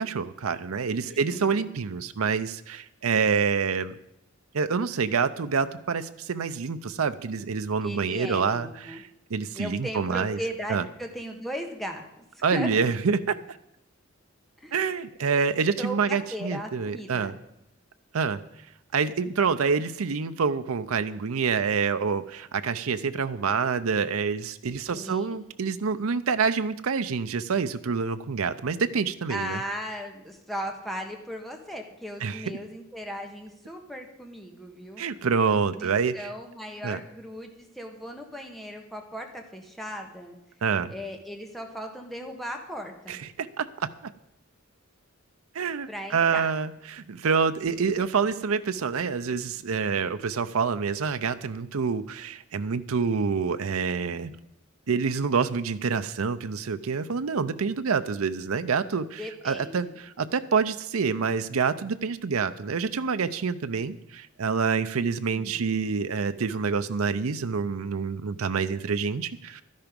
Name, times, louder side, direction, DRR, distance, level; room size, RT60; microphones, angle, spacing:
voice 1, 0.0-3.9 4.5-10.4 10.7-10.8 12.4-13.6 14.7-17.3 18.1-18.4 18.9-29.6 32.2-32.5 35.0-36.3 36.8-37.0 40.6-40.9 43.1-44.1 45.5-54.3 54.9-59.2 59.4-69.6, right 5 dB, 85° right, 10 dB, 0.6 m, -27 dB
voice 2, 1.0-1.8 7.8-9.0 9.5-12.0 12.3-12.8 14.6-14.8 15.8-17.4 24.9-25.4 29.3-35.1 35.8-40.4 40.9-43.2 45.9-46.5 59.2-60.0 65.3-65.6, equal, ahead, 3 dB, 1.5 m, -37 dB
12.5 x 10.5 x 5.2 m, 0.85 s
head